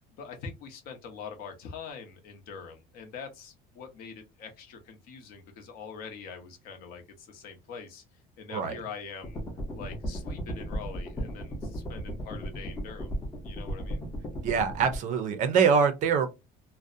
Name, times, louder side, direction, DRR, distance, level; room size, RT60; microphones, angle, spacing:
voice 1, 0.1-8.0 8.4-9.4 9.7-13.2 13.4-14.0, left 6 dB, 55° left, 0.7 m, -44 dB
sound 1, 9.2-15.0, equal, 15° left, 0.6 m, -35 dB
voice 2, 14.4-16.3, right 6 dB, 45° right, 0.5 m, -24 dB
2.5 x 2.0 x 2.4 m
cardioid pair, 160°, 18 cm